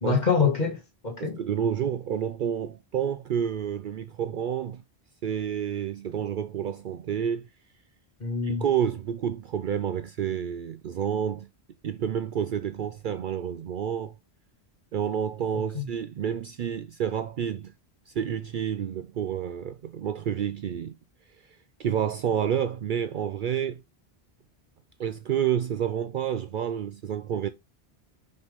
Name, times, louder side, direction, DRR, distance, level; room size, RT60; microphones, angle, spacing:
voice 1, 0.0-1.4 8.2-8.6 15.7-15.9, left 5 dB, 45° left, 1.8 m, -25 dB
voice 2, 1.2-4.8 5.2-7.5 8.4-11.5 11.8-14.1 14.9-17.7 18.1-20.9 21.8-23.8 25.0-27.5, right 9 dB, 60° right, 0.6 m, -29 dB
5.6 x 5.5 x 3.5 m
omnidirectional pair, 1.0 m